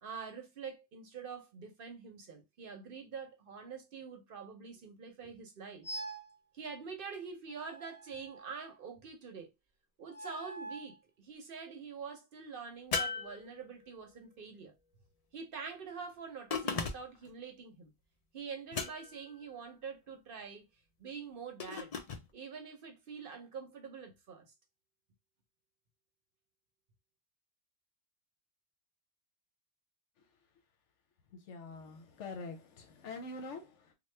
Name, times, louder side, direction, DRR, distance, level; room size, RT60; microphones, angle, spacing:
voice 1, 0.0-5.9 6.5-9.5 10.0-14.7 15.3-17.9 18.3-20.6 21.0-21.9 22.3-24.5, right 5 dB, 55° right, 0.8 m, -45 dB
sound 1, 5.8-6.3 7.5-8.7 10.1-10.9, right 2 dB, 30° left, 1.5 m, -45 dB
sound 2, 12.9-14.0 16.5-17.3 18.7-19.3 21.6-22.3, left 5 dB, 55° left, 0.4 m, -37 dB
voice 2, 31.5-33.9, left 3 dB, 85° left, 1.0 m, -45 dB
3.0 x 2.0 x 3.1 m
omnidirectional pair, 1.2 m